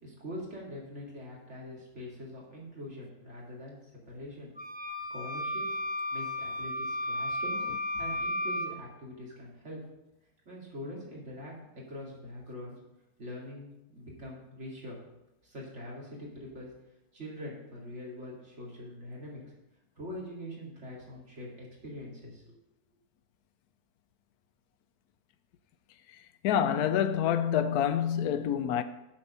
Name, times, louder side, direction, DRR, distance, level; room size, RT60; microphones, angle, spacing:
voice 1, 0.0-3.8 4.1-4.5 5.1-5.7 6.1-7.6 8.0-9.8 10.5-12.8 13.2-15.0 15.4-16.7 17.1-19.4 20.0-22.5, left 1 dB, 40° right, 2.7 m, -43 dB
sound 1, 4.6-8.7, left 1 dB, 10° right, 0.4 m, -33 dB
voice 2, 26.4-28.8, left 9 dB, 70° left, 1.0 m, -27 dB
7.4 x 6.5 x 5.4 m
omnidirectional pair, 1.8 m